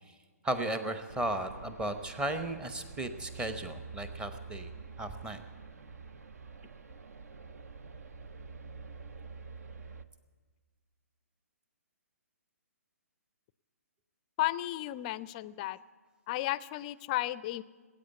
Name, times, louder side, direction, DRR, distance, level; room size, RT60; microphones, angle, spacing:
voice 1, 0.4-4.7 5.0-5.4, right 1 dB, 10° right, 9 dB, 0.9 m, -35 dB
sound 1, 1.1-10.0, right 4 dB, 70° right, 0.8 m, -47 dB
voice 2, 14.4-15.8 16.3-17.6, left 16 dB, 30° left, 18 dB, 0.4 m, -33 dB
19.5 x 8.9 x 8.1 m, 1.4 s
figure-of-eight pair, 130°, 9 cm